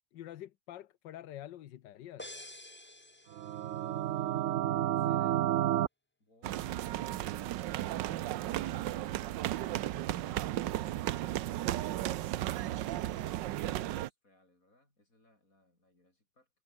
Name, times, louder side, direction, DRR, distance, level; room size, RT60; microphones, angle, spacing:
voice 1, 0.1-2.4, left 12 dB, 85° left, 1.5 m, -47 dB
sound 1, 2.2-4.0, left 1 dB, 10° left, 0.8 m, -49 dB
sound 2, 3.3-5.9, right 12 dB, 65° right, 0.8 m, -30 dB
voice 2, 4.8-5.5 6.2-10.1 13.1-16.5, left 1 dB, 50° left, 8.7 m, -68 dB
sound 3, 6.4-14.1, right 14 dB, 90° right, 1.4 m, -35 dB
omnidirectional pair, 1.9 m